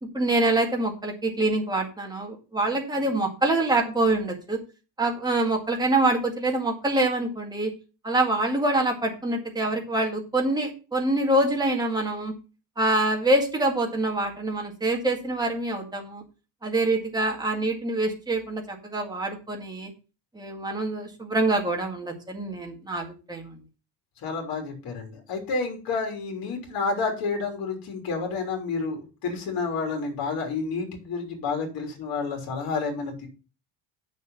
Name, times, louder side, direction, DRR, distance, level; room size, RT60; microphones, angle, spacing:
voice 1, 0.0-4.6 5.0-7.7 8.0-12.3 12.8-16.2 16.6-19.9 20.3-23.6, right 2 dB, 10° right, 1 dB, 2.0 m, -25 dB
voice 2, 24.2-33.3, left 4 dB, 50° left, 3 dB, 3.4 m, -30 dB
8.3 x 6.6 x 5.6 m, 0.33 s
cardioid pair, 165°, 44 cm